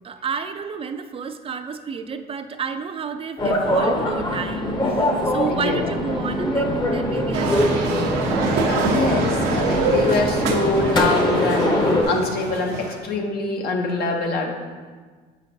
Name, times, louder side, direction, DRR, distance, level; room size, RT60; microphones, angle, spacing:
voice 1, 0.0-4.8 5.3-8.0, right 6 dB, 35° right, 9 dB, 0.3 m, -30 dB
sound 1, 3.4-12.0, left 1 dB, 25° left, 0.8 m, -23 dB
voice 2, 5.5-5.8 8.7-11.8 12.0-14.5, left 3 dB, 70° left, 2 dB, 1.0 m, -24 dB
sound 2, 7.3-13.0, right 4 dB, 90° right, 0.8 m, -25 dB
7.3 x 5.1 x 2.7 m, 1.5 s
cardioid pair, 110°, 17 cm